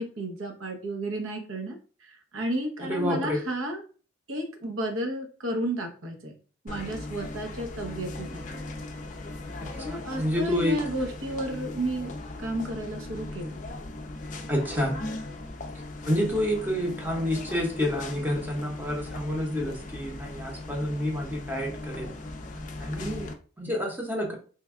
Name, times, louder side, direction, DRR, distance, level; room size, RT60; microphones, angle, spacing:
voice 1, 0.0-3.8 4.3-6.3 6.6-8.6 9.7-13.6, right 1 dB, 80° right, 3 dB, 0.8 m, -32 dB
voice 2, 2.8-3.4 9.6-10.8 14.5-15.0 16.0-22.1 22.8-23.3 23.6-24.3, equal, 10° right, 0 dB, 0.7 m, -29 dB
sound 1, 6.7-23.3, left 2 dB, 40° left, 0.4 m, -38 dB
3.3 x 2.2 x 3.5 m, 0.39 s
head